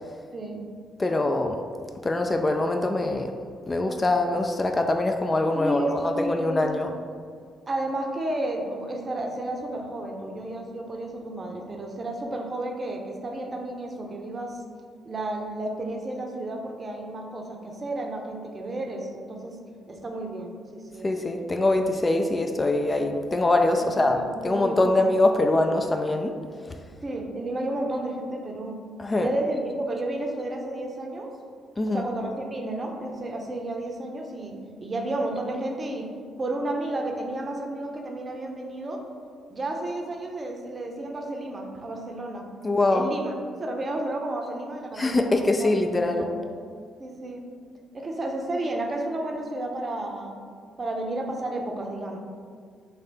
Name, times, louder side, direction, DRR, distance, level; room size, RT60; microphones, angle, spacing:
voice 1, 0.3-0.7 5.5-6.7 7.7-14.6 15.0-19.6 19.9-21.1 23.9-25.0 27.0-28.8 29.1-31.3 31.9-36.1 36.4-39.0 39.5-42.5 42.9-43.3 43.6-46.3 47.0-47.4 47.9-50.4 50.8-52.2, right 1 dB, 35° right, 2 dB, 0.6 m, -32 dB
voice 2, 1.0-1.6 2.0-3.3 3.7-6.9 21.0-26.3 29.0-29.3 31.8-32.1 42.6-43.1 45.0-46.3, left 2 dB, 30° left, 5 dB, 0.3 m, -23 dB
3.2 x 2.7 x 3.9 m, 2.1 s
hypercardioid pair, 45°, 0 cm